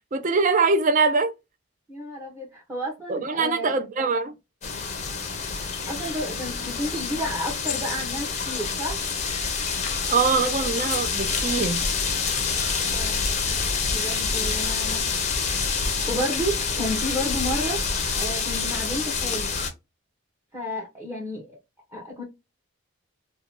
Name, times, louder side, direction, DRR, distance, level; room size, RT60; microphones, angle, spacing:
voice 1, 0.1-1.3 3.1-4.3 10.1-11.9, right 4 dB, 35° right, 0.4 m, -23 dB
voice 2, 1.9-3.7 5.9-9.0 12.8-13.2 13.9-15.0 15.9-17.8 18.2-19.5 20.5-21.6 21.9-22.2, equal, 10° right, 0.7 m, -31 dB
sound 1, 4.6-19.7, left 5 dB, 30° left, 0.5 m, -27 dB
2.6 x 2.2 x 2.8 m
head